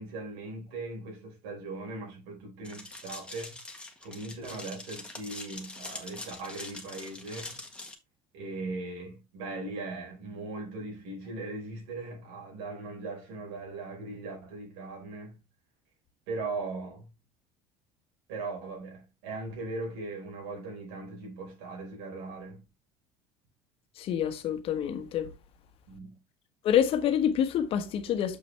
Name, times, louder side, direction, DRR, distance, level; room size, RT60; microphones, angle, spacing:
voice 1, 0.0-3.6 4.0-7.6 8.3-15.4 16.3-17.1 18.3-22.6 25.9-26.2, right 3 dB, 85° right, 4.8 m, -39 dB
sound 1, 2.6-7.9, left 2 dB, 10° left, 1.8 m, -43 dB
voice 2, 24.0-25.3 26.6-28.4, left 9 dB, 55° left, 1.4 m, -27 dB
7.1 x 6.0 x 3.4 m
supercardioid pair, 110°, 12 cm